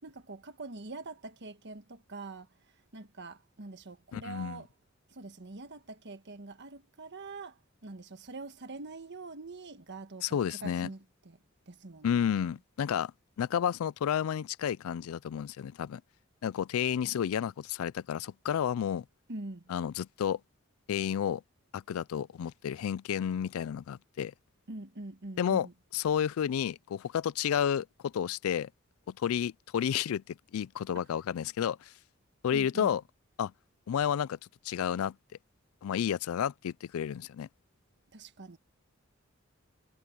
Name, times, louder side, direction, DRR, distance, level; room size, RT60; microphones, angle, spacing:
voice 1, 0.0-2.5 2.9-4.7 5.1-11.4 11.7-12.4 19.3-19.7 24.7-25.7 32.5-33.0 38.1-38.6, right 3 dB, 55° right, 1.5 m, -44 dB
voice 2, 4.1-4.6 10.2-10.9 12.0-13.1 13.4-16.0 16.4-19.0 19.7-20.4 20.9-21.4 21.7-24.3 25.4-25.7 25.9-28.7 29.2-31.8 32.4-33.0 33.4-33.5 33.9-34.4 34.7-35.1 35.8-37.5, left 8 dB, 80° left, 0.3 m, -31 dB
head